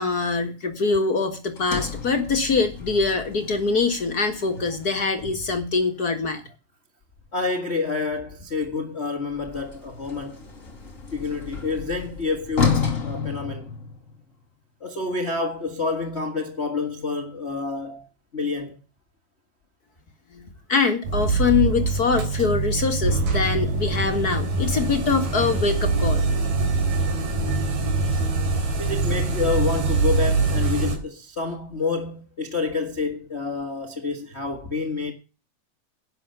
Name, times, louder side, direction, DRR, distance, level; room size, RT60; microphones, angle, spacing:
voice 1, 0.0-6.4 20.3-20.4 20.7-26.3, left 4 dB, 45° left, 1.2 m, -23 dB
Sliding door, 1.5-5.8 9.3-14.2, left 5 dB, 25° left, 2.3 m, -31 dB
voice 2, 7.3-10.4 11.1-13.7 14.8-18.1 18.3-18.8 28.8-35.1, left 4 dB, 65° left, 0.6 m, -28 dB
sound 1, 21.0-31.0, right 3 dB, 70° right, 4.8 m, -23 dB
11.0 x 8.6 x 6.7 m
omnidirectional pair, 4.1 m